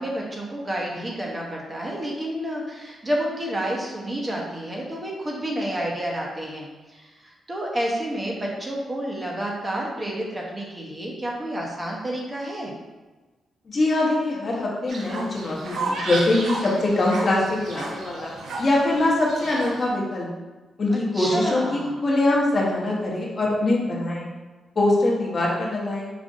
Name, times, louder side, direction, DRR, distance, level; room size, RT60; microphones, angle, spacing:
voice 1, 0.0-12.7 20.9-21.9, right 1 dB, 20° right, -2 dB, 0.7 m, -30 dB
voice 2, 13.7-18.3 18.6-20.3 20.8-24.3 24.8-26.1, left 2 dB, 35° left, -4 dB, 0.9 m, -23 dB
Fowl, 14.9-19.9, right 2 dB, 70° right, 0.7 m, -33 dB
5.0 x 2.5 x 2.6 m, 1.3 s
wide cardioid pair, 135°, 0 cm